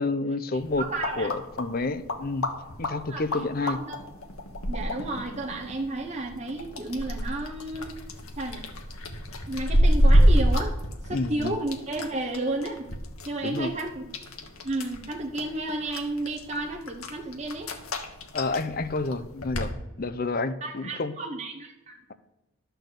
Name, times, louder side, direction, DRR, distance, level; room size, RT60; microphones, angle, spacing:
voice 1, 0.0-0.8 1.2-2.5 2.8-3.8 11.1-11.6 13.4-13.7 18.3-21.1, left 3 dB, 40° left, 12 dB, 0.6 m, -29 dB
sound 1, 0.6-19.7, equal, 80° left, 1.3 m, -28 dB
voice 2, 0.8-1.3 3.0-3.2 3.6-4.0 4.7-8.0 8.4-8.7 9.5-10.8 11.0-12.9 13.3-14.0 14.6-17.7 20.6-22.0, right 2 dB, 30° right, 1 dB, 0.8 m, -32 dB
11.5 x 4.5 x 8.0 m, 1.0 s
head